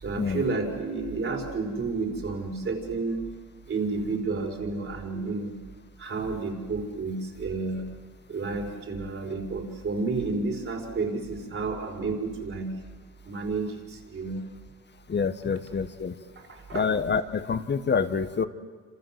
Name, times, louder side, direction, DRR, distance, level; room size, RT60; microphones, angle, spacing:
voice 1, 0.0-3.2 3.7-5.6 6.0-7.8 8.3-12.7 13.3-14.4 15.4-15.6 16.4-16.9, right 3 dB, 45° right, 2 dB, 5.4 m, -31 dB
voice 2, 15.1-16.1 16.7-18.4, left 5 dB, 35° left, 10 dB, 1.4 m, -27 dB
27.0 x 27.0 x 7.8 m, 1.6 s
cardioid pair, 90°, 30 cm